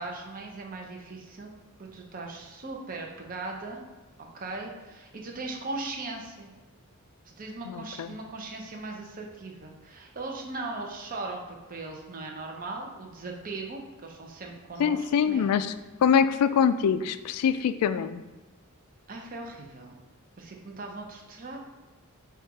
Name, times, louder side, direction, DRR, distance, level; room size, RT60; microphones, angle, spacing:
voice 1, 0.0-1.5 1.8-3.8 4.3-6.5 7.2-15.5 19.1-19.9 20.4-21.6, right 3 dB, 40° right, 1 dB, 0.6 m, -39 dB
voice 2, 7.7-8.1 14.8-15.7 16.0-18.2, left 7 dB, 90° left, 15 dB, 0.3 m, -24 dB
4.3 x 2.4 x 4.8 m, 1.2 s
head